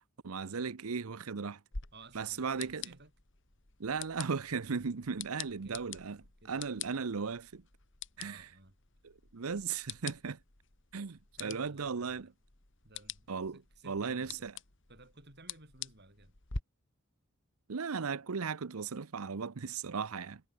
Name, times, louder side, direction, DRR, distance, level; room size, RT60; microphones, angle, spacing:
voice 1, 0.2-1.6 2.1-2.9 3.8-6.2 6.5-7.6 8.2-8.4 9.0-10.4 10.9-12.3 13.3-13.6 13.9-14.5 17.7-20.4, right 5 dB, 90° right, 0.7 m, -36 dB
sound 1, 1.7-16.6, left 6 dB, 60° left, 2.5 m, -47 dB
voice 2, 1.9-3.1 5.0-5.1 5.5-5.9 6.4-7.2 8.2-8.7 11.4-12.3 12.8-14.5 14.9-16.4, right 2 dB, 50° right, 7.0 m, -56 dB
head